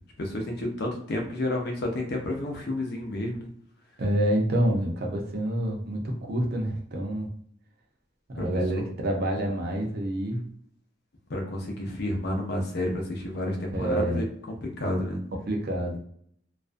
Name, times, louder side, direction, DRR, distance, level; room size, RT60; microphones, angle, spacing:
voice 1, 0.2-3.5 8.4-8.5 8.7-8.8 11.3-15.2, left 1 dB, 60° left, 2 dB, 0.6 m, -30 dB
voice 2, 4.0-7.3 8.3-10.5 13.7-14.2 15.5-16.0, right 1 dB, 55° right, 1 dB, 0.5 m, -27 dB
2.4 x 2.1 x 2.5 m, 0.64 s
head